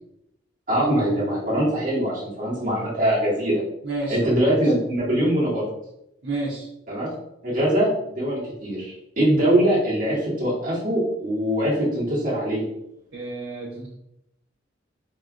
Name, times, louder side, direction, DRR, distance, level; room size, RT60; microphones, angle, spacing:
voice 1, 0.7-3.6 4.1-5.7 6.9-7.1 7.4-12.6, right 1 dB, 45° right, -7 dB, 1.3 m, -22 dB
voice 2, 3.8-4.3 6.2-6.7 13.1-13.9, right 2 dB, 60° right, -9 dB, 0.8 m, -30 dB
4.1 x 2.4 x 2.4 m, 0.82 s
head